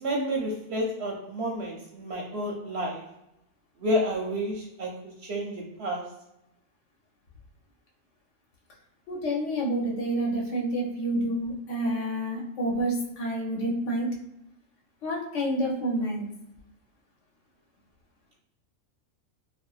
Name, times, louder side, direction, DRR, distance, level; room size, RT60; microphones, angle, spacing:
voice 1, 0.0-3.0 3.8-4.9 5.3-6.0, equal, 65° right, -1 dB, 0.7 m, -30 dB
voice 2, 9.1-14.1 15.0-16.3, right 1 dB, 65° left, -1 dB, 1.0 m, -28 dB
3.0 x 2.5 x 2.3 m, 0.82 s
omnidirectional pair, 1.4 m